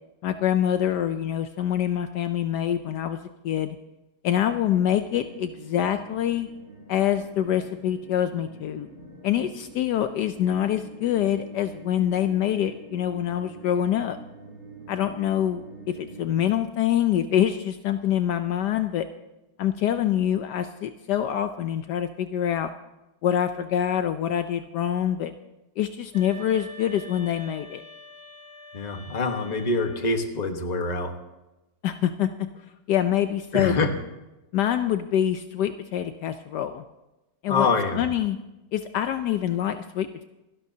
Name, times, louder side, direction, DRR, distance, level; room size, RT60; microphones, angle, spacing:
voice 1, 0.2-3.2 3.4-3.8 4.2-6.5 6.9-8.9 9.2-14.2 14.9-19.0 19.6-22.7 23.2-25.3 25.8-27.8 31.8-32.3 32.9-33.9 34.5-36.8 37.4-37.7 38.0-38.4 38.7-40.2, left 10 dB, 75° left, 9 dB, 1.2 m, -25 dB
sound 1, 4.4-16.4, right 2 dB, 40° right, 6.7 m, -46 dB
sound 2, 26.1-30.3, left 1 dB, 60° right, 2.0 m, -45 dB
voice 2, 28.7-31.1 33.5-33.9 37.5-38.0, left 3 dB, 25° left, 5 dB, 1.2 m, -25 dB
26.5 x 11.5 x 2.8 m, 1.0 s
omnidirectional pair, 1.9 m